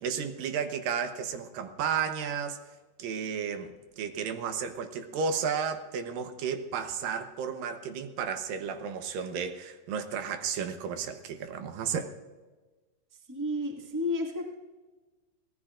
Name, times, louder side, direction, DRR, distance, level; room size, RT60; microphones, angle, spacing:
voice 1, 0.0-2.6 3.0-12.1, right 6 dB, 85° right, 2.7 m, -33 dB
voice 2, 13.3-14.5, left 2 dB, 10° right, 1.0 m, -31 dB
24.5 x 18.0 x 2.5 m
omnidirectional pair, 3.9 m